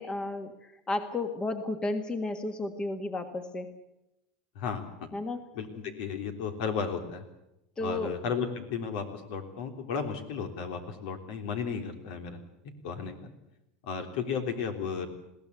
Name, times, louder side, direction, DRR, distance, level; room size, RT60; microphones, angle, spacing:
voice 1, 0.0-3.7 5.1-5.4 7.8-8.2, left 2 dB, 20° left, 8 dB, 1.7 m, -33 dB
voice 2, 4.5-5.1 5.5-7.3 7.8-12.4 12.8-13.3 13.8-15.1, left 6 dB, 70° left, 6 dB, 3.4 m, -34 dB
21.0 x 16.5 x 8.2 m, 0.91 s
supercardioid pair, 120°, 5 cm